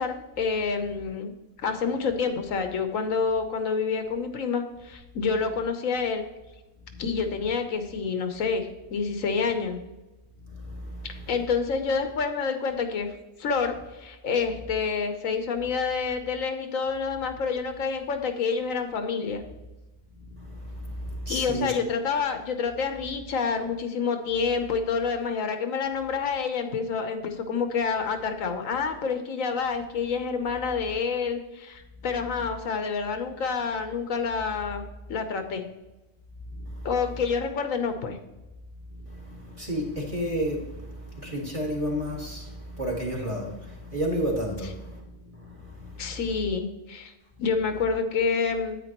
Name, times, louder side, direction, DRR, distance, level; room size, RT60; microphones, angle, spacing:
voice 1, 0.0-1.3 1.6-6.3 7.0-9.8 11.1-13.1 13.4-19.4 21.3-35.6 36.8-38.2 46.0-47.1 47.4-48.8, left 5 dB, 80° left, 1.3 m, -28 dB
voice 2, 10.4-11.4 20.1-21.8 36.5-36.9 38.9-46.4, equal, 25° right, 2.0 m, -32 dB
9.4 x 9.0 x 3.0 m
omnidirectional pair, 1.4 m